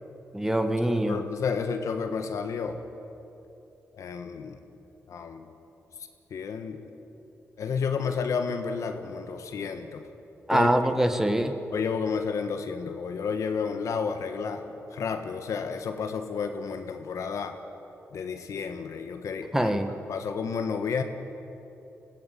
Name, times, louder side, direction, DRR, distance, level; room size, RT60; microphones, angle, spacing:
voice 1, 0.3-1.2 10.5-11.5 19.5-19.9, right 1 dB, 10° right, 7 dB, 1.7 m, -24 dB
voice 2, 0.9-2.8 3.9-4.6 5.1-5.5 6.3-6.8 7.6-10.0 10.5-10.9 11.7-14.6 14.9-17.6 18.1-19.7 20.1-21.0, left 5 dB, 75° left, 7 dB, 1.4 m, -31 dB
21.0 x 15.5 x 8.4 m, 3.0 s
cardioid pair, 65°, 5 cm